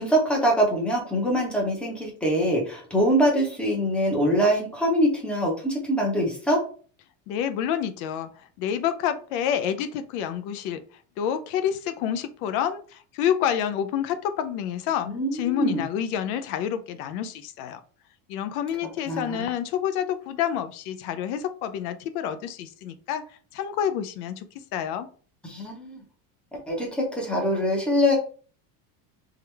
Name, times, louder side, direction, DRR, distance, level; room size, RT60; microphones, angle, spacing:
voice 1, 0.0-6.6 15.0-15.8 19.1-19.4 25.4-26.0 26.5-28.2, equal, ahead, -1 dB, 0.7 m, -24 dB
voice 2, 7.3-10.8 11.2-17.8 18.3-25.1, left 9 dB, 65° left, 10 dB, 0.7 m, -28 dB
3.6 x 3.4 x 3.3 m, 0.41 s
cardioid pair, 170°, 48 cm